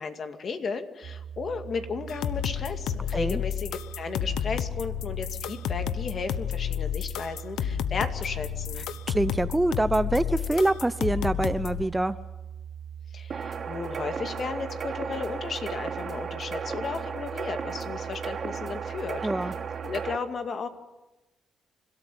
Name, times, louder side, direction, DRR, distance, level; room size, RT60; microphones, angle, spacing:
voice 1, 0.0-8.8 13.1-19.2 19.8-20.7, left 5 dB, 50° left, 7 dB, 2.2 m, -34 dB
sound 1, 1.0-20.2, right 8 dB, 65° right, 1.8 m, -42 dB
sound 2, 2.1-11.8, left 10 dB, 85° left, 1.0 m, -31 dB
voice 2, 9.1-12.2 19.2-19.5, right 1 dB, 10° right, 14 dB, 0.8 m, -25 dB
sound 3, 13.3-20.2, right 5 dB, 45° right, 3.3 m, -35 dB
28.0 x 13.5 x 9.2 m, 1.0 s
cardioid pair, 90°, 0 cm